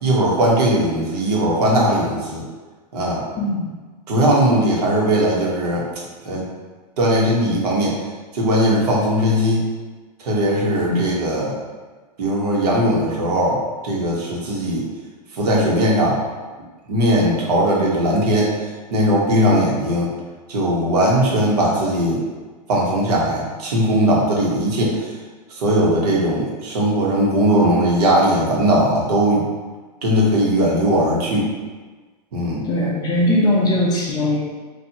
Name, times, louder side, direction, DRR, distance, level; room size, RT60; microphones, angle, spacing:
voice 1, 0.0-2.4 2.9-3.2 4.1-5.8 6.2-6.5 7.0-7.9 8.3-9.7 10.2-11.5 12.2-13.6 13.8-14.8 15.3-16.2 16.9-18.5 18.9-20.1 20.5-22.2 22.7-25.0 25.5-29.5 30.0-31.5 32.3-32.6, equal, 70° right, -4 dB, 1.3 m, -18 dB
voice 2, 3.4-3.7 10.9-11.1 32.6-34.4, left 1 dB, 20° left, -3 dB, 0.5 m, -19 dB
4.3 x 2.6 x 2.9 m, 1.3 s
hypercardioid pair, 140°, 21 cm